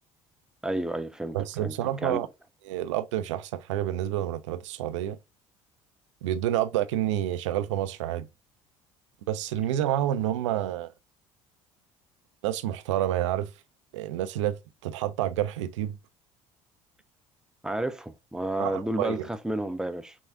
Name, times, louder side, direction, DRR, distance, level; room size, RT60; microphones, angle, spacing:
voice 1, 0.6-1.7 2.0-2.2 17.6-20.2, right 1 dB, 5° right, 0.5 m, -31 dB
voice 2, 1.3-2.3 2.7-5.2 6.2-8.3 9.3-10.9 12.4-13.5 13.9-16.0 18.6-19.3, right 12 dB, 65° right, 0.5 m, -29 dB
6.2 x 2.3 x 3.6 m
figure-of-eight pair, 60°, 17 cm